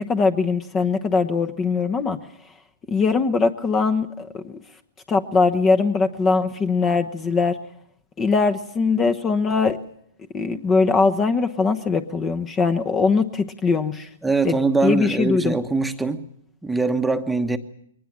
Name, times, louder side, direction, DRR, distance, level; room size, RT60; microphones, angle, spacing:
voice 1, 0.0-2.2 2.9-4.5 5.1-7.6 8.2-9.8 10.3-14.1 14.4-15.6, left 4 dB, 20° left, 1.0 m, -21 dB
voice 2, 14.2-16.2 16.6-17.6, right 3 dB, 5° right, 1.2 m, -22 dB
22.0 x 19.5 x 7.5 m
hypercardioid pair, 130°, 0 cm